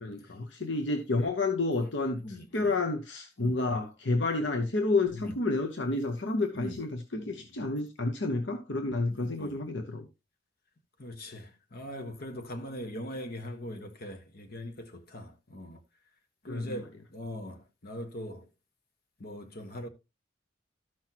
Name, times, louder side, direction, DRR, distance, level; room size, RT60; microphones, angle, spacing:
voice 1, 0.0-2.2 2.5-10.0 16.5-16.8, left 2 dB, 70° left, 1.1 m, -30 dB
voice 2, 2.2-2.7 3.4-3.5 5.2-5.4 6.5-6.8 9.1-9.6 11.0-15.8 16.4-16.8 17.1-18.4 19.2-19.9, equal, 55° left, 1.5 m, -41 dB
13.0 x 6.0 x 2.9 m
head